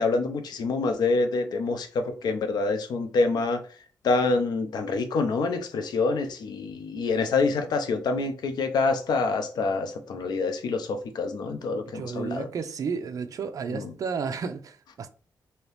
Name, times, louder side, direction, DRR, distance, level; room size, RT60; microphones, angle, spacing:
voice 1, 0.0-3.6 4.0-12.5 13.7-13.9, left 3 dB, 85° left, 0.5 m, -26 dB
voice 2, 11.9-15.1, right 5 dB, 55° right, 0.4 m, -32 dB
2.8 x 2.7 x 3.3 m
wide cardioid pair, 150°, 7 cm